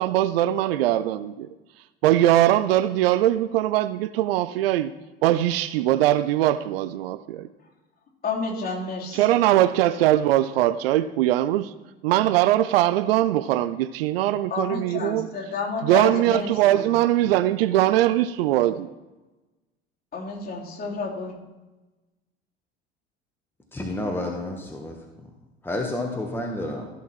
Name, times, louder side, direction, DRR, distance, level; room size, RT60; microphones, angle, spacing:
voice 1, 0.0-1.5 2.0-4.9 5.2-7.5 9.1-11.7 12.0-15.3 15.8-18.9, right 13 dB, 65° right, 0.6 m, -21 dB
voice 2, 8.2-9.2 14.5-16.5 16.8-16.9 20.1-21.4, left 4 dB, 30° left, 3.7 m, -30 dB
voice 3, 23.7-25.0 25.6-26.9, left 1 dB, 5° left, 1.6 m, -30 dB
15.0 x 6.6 x 4.4 m
figure-of-eight pair, 65°, 31 cm